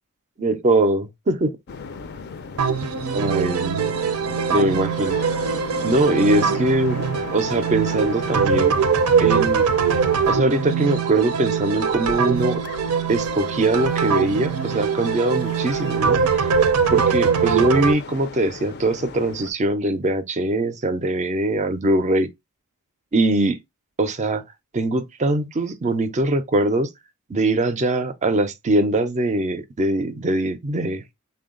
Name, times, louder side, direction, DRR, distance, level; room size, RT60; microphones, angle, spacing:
voice 1, 0.4-1.6 3.1-3.9 4.5-5.2 5.8-7.0 7.3-8.8 9.2-12.6 13.1-16.5 16.9-22.3 23.1-23.6 24.0-24.4 24.7-26.9 27.3-31.0, right 2 dB, 30° right, 0.4 m, -22 dB
sound 1, 1.7-19.5, left 4 dB, 50° left, 0.4 m, -37 dB
sound 2, 2.6-17.9, right 6 dB, 85° right, 0.5 m, -22 dB
3.7 x 2.2 x 3.6 m
head